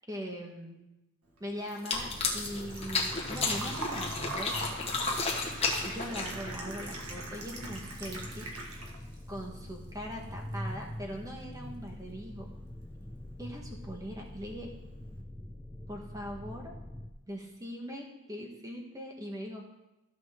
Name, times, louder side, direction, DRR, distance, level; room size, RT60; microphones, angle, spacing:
voice 1, 0.1-0.8 1.4-4.9 5.8-8.5 9.3-12.5 13.4-14.7 15.9-16.7 17.3-19.6, equal, 15° right, 1 dB, 1.3 m, -41 dB
Engine / Trickle dribble / Fill (with liquid), 1.3-9.2 9.5-10.5 10.8-10.9 12.8-12.9 13.1-13.4 13.8-13.9 14.2-14.3, right 2 dB, 80° right, 1.7 m, -42 dB
sound 1, 1.7-6.6, left 4 dB, 25° left, 1.3 m, -32 dB
sound 2, 1.9-17.1, left 1 dB, 5° left, 0.5 m, -44 dB
14.5 x 6.2 x 3.7 m, 0.95 s
head